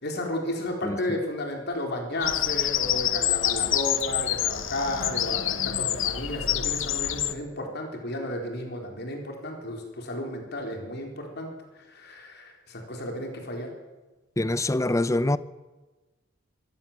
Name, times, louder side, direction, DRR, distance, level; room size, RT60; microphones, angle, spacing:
voice 1, 0.0-11.5 11.9-13.7, left 1 dB, 55° left, 4.2 m, -33 dB
Bird vocalization bird call bird song, 2.2-7.3, left 12 dB, 80° left, 1.1 m, -27 dB
voice 2, 14.4-15.4, left 2 dB, 15° left, 0.7 m, -24 dB
25.0 x 16.5 x 7.4 m
head